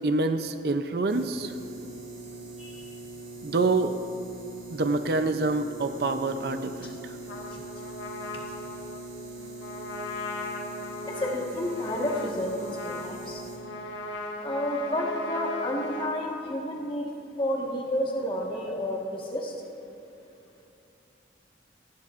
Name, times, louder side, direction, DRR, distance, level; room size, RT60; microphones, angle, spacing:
voice 1, 0.0-1.5 3.4-4.0 4.7-7.2, right 3 dB, 55° right, 8 dB, 0.5 m, -27 dB
sound 1, 1.1-13.6, right 2 dB, 80° right, 3.2 m, -42 dB
voice 2, 2.6-2.9 6.8-6.9 7.5-7.6 11.1-13.4 14.4-17.0 17.4-19.5, left 1 dB, 25° left, -1 dB, 1.4 m, -30 dB
Trumpet, 7.3-16.1, left 1 dB, 80° left, 1.2 m, -38 dB
18.5 x 16.0 x 2.5 m, 2.8 s
head